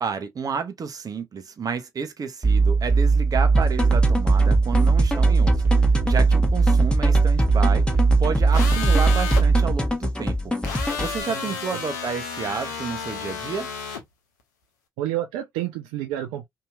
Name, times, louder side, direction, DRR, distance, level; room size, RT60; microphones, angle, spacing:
voice 1, 0.0-10.5 11.0-13.7, right 6 dB, 45° right, 0.7 m, -31 dB
sound 1, 2.4-9.8, right 4 dB, 20° right, 1.2 m, -19 dB
sound 2, 3.5-11.2, left 1 dB, 10° left, 1.1 m, -27 dB
sound 3, 8.5-9.4 10.6-14.0, left 5 dB, 85° left, 0.6 m, -32 dB
voice 2, 15.0-16.5, right 13 dB, 75° right, 0.4 m, -29 dB
2.9 x 2.7 x 2.3 m
figure-of-eight pair, 40°, 9 cm